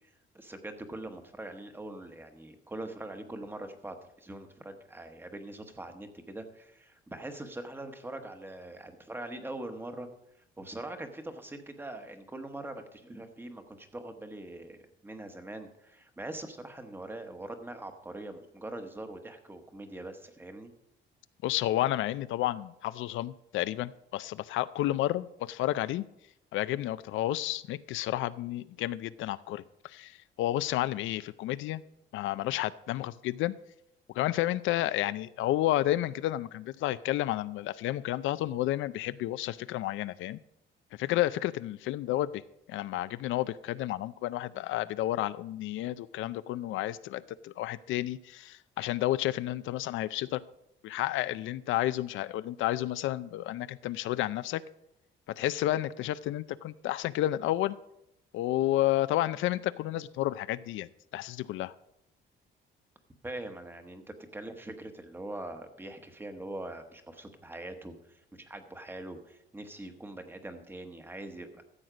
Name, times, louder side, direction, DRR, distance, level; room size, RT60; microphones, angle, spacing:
voice 1, 0.0-10.1 10.6-20.7 63.2-71.6, right 1 dB, 10° right, 7 dB, 1.0 m, -42 dB
voice 2, 21.4-26.0 26.5-31.8 32.1-33.5 34.1-40.4 41.0-42.4 42.7-50.4 50.8-54.6 55.4-57.8 58.3-61.7, left 14 dB, 80° left, 15 dB, 0.5 m, -31 dB
13.5 x 7.9 x 5.0 m, 0.81 s
cardioid pair, 165°, 20 cm